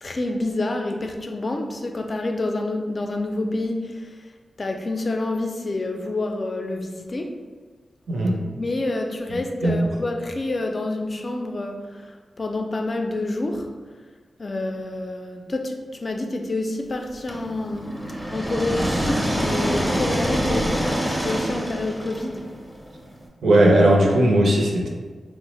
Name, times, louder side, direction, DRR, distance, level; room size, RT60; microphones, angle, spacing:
voice 1, 0.0-4.1 4.6-7.4 8.6-13.7 14.4-22.5, left 2 dB, 45° left, 4 dB, 0.4 m, -28 dB
sound 1, 17.3-23.2, equal, 5° right, 0.5 m, -26 dB
voice 2, 23.4-24.9, right 1 dB, 75° right, 0 dB, 0.5 m, -17 dB
3.3 x 2.0 x 3.0 m, 1.4 s
cardioid pair, 65°, 0 cm